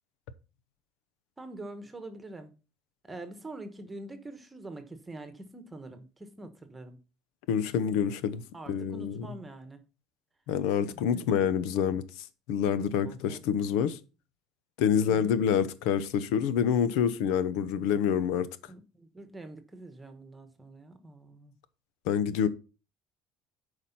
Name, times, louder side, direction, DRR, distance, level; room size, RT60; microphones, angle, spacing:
voice 1, 1.4-2.5 3.0-7.0 8.5-9.8 10.9-11.2 13.0-13.4 15.1-15.4 18.7-21.5, right 2 dB, 15° right, 1.2 m, -45 dB
voice 2, 7.5-8.4 8.7-9.3 10.5-14.0 14.8-18.5 22.1-22.5, left 8 dB, 90° left, 0.9 m, -27 dB
8.4 x 5.0 x 5.8 m
cardioid pair, 140°, 0 cm